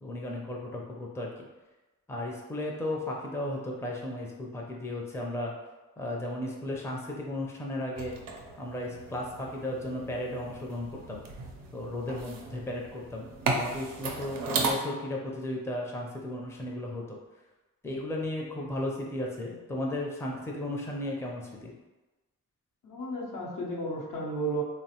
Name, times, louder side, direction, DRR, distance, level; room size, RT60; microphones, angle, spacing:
voice 1, 0.0-1.3 2.1-5.6 6.0-8.2 8.6-11.2 11.7-17.2 17.8-21.7, left 1 dB, 10° left, -1 dB, 0.5 m, -35 dB
sound 1, 8.0-14.7, right 3 dB, 85° right, 0.5 m, -36 dB
voice 2, 22.8-24.6, right 2 dB, 70° left, -3 dB, 0.7 m, -33 dB
3.1 x 2.0 x 2.8 m, 1.1 s
cardioid pair, 55°, 33 cm